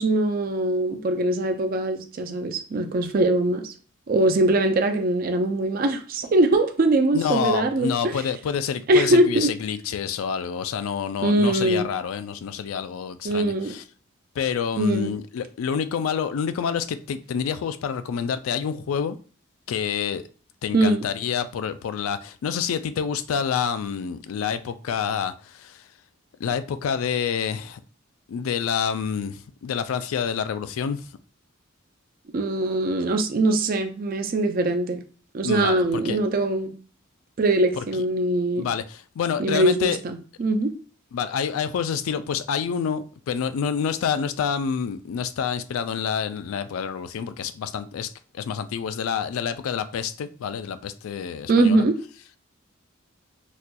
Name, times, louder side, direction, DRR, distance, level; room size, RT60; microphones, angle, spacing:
voice 1, 0.0-3.7 4.1-8.1 8.9-9.5 11.2-11.9 13.2-13.7 14.8-15.1 20.7-21.0 32.3-35.0 35.3-36.7 37.4-38.7 39.4-40.7 51.5-52.0, right 2 dB, 45° right, 0.4 m, -22 dB
voice 2, 7.1-13.8 14.4-19.2 19.7-20.2 20.6-25.8 26.4-27.8 28.3-31.1 35.4-36.2 37.8-37.9 38.6-40.0 41.1-51.8, left 7 dB, 85° left, 0.3 m, -28 dB
4.1 x 2.5 x 2.2 m
head